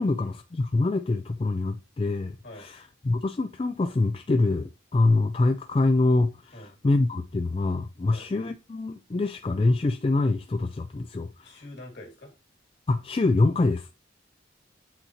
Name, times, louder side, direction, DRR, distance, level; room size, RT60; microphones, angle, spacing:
voice 1, 0.0-11.6 12.9-13.9, left 2 dB, 30° left, 0.3 m, -25 dB
voice 2, 11.4-12.3, left 1 dB, 60° left, 2.4 m, -45 dB
7.9 x 4.2 x 3.0 m
head